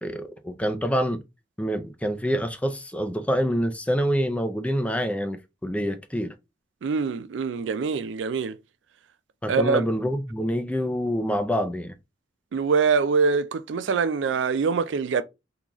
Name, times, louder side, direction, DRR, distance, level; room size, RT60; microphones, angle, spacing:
voice 1, 0.0-1.2 1.6-6.3 9.4-11.9, equal, 5° left, 0.4 m, -26 dB
voice 2, 6.8-8.6 9.5-9.9 12.5-15.2, right 5 dB, 85° right, 0.4 m, -24 dB
3.8 x 2.4 x 3.0 m
head